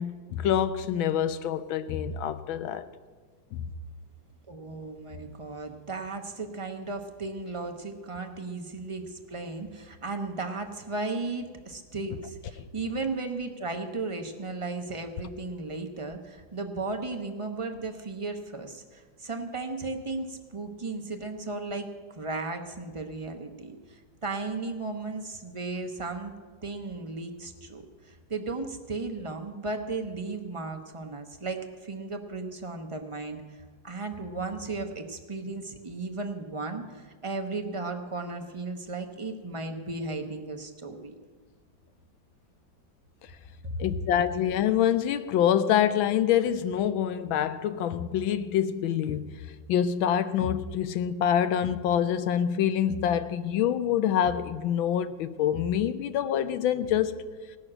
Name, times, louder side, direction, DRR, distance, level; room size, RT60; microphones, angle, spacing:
voice 1, 0.0-2.9 3.5-3.7 43.8-49.4 49.7-57.2, left 9 dB, 85° left, 1.5 m, -26 dB
voice 2, 4.5-21.9 22.1-26.3 26.6-41.1 43.6-43.8, right 3 dB, 30° right, 0.5 m, -35 dB
17.0 x 6.5 x 8.8 m
omnidirectional pair, 2.1 m